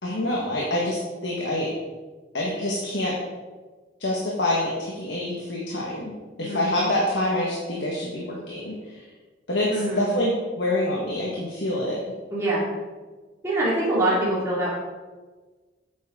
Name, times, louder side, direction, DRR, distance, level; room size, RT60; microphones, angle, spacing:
voice 1, 0.0-1.7 2.3-3.1 4.0-6.1 6.4-9.0 9.5-9.7 10.0-12.0, left 1 dB, 65° left, -4 dB, 1.6 m, -26 dB
voice 2, 9.7-10.1 12.3-12.6 13.4-14.7, right 1 dB, 15° right, -9 dB, 2.5 m, -24 dB
9.1 x 8.4 x 3.8 m, 1.3 s
head